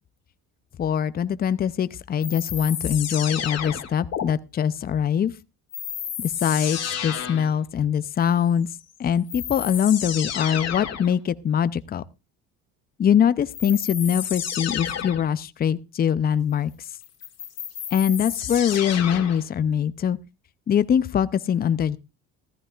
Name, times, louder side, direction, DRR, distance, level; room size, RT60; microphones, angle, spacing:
voice 1, 0.8-5.3 6.2-8.7 9.0-12.0 13.0-16.7 17.9-20.2 20.7-22.0, left 8 dB, 25° left, 0.5 m, -23 dB
sound 1, 2.2-4.2 5.7-7.5 8.8-8.9 9.3-11.1 13.5-15.3 17.0-19.5, left 9 dB, 45° left, 2.2 m, -31 dB
15.0 x 14.0 x 2.4 m
cardioid pair, 105°, 34 cm